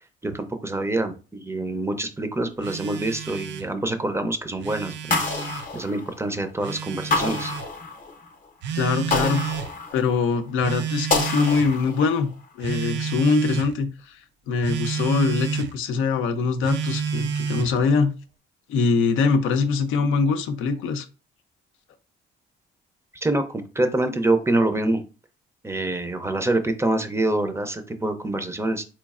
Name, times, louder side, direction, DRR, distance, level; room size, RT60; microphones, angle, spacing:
voice 1, 0.2-5.2 5.7-7.5 23.2-25.0 25.6-28.8, right 2 dB, 15° right, 8 dB, 0.5 m, -25 dB
Telephone, 2.6-3.7 4.5-5.7 6.6-7.7 8.6-9.7 10.6-11.8 12.6-13.7 14.6-15.7 16.6-17.8, right 7 dB, 65° right, 0.4 m, -30 dB
sound 1, 5.1-6.5 7.1-8.3 9.1-10.3 11.1-12.3, left 3 dB, 45° left, 0.7 m, -27 dB
voice 2, 8.7-9.4 9.9-12.3 12.6-14.2 14.5-18.1 18.7-21.1, left 4 dB, 85° left, 7 dB, 0.5 m, -23 dB
4.0 x 3.1 x 2.3 m, 0.34 s
cardioid pair, 90°, 20 cm